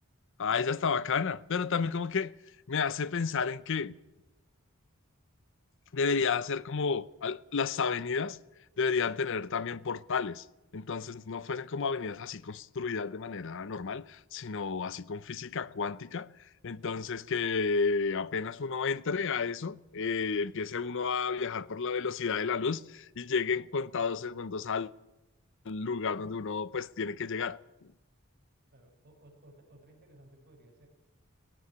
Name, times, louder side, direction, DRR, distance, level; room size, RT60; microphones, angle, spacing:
voice 1, 0.4-2.3 2.7-4.0 5.9-8.4 8.8-10.4 10.7-16.3 16.6-24.9 25.7-27.6, left 5 dB, 60° left, 0.6 m, -31 dB
voice 2, 28.7-30.9, right 1 dB, 50° right, 5.5 m, -58 dB
17.0 x 16.5 x 9.6 m
head